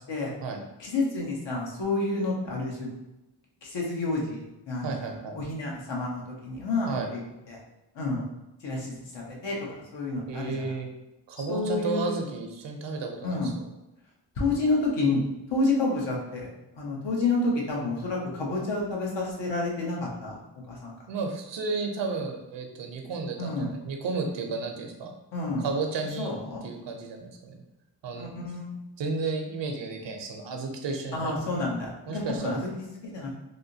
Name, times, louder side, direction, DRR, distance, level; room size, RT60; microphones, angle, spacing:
voice 1, 0.0-0.3 0.8-2.9 3.6-7.2 7.5-7.6 7.9-8.2 8.6-9.6 9.9-10.7 11.5-12.2 13.2-13.5 14.4-15.2 15.5-16.5 16.7-20.4 20.7-20.9 23.4-23.7 25.3-25.6 26.2-26.6 28.1-28.8 31.1-32.7 33.0-33.3, left 2 dB, 70° left, -2 dB, 1.0 m, -29 dB
voice 2, 4.8-5.4 6.9-7.1 10.3-10.9 11.3-13.4 21.1-25.1 25.6-26.3 26.6-27.6 28.0-28.3 29.0-31.5 32.1-32.6, right 4 dB, 75° right, 3 dB, 0.7 m, -32 dB
3.5 x 2.5 x 2.7 m, 0.95 s
cardioid pair, 85°, 44 cm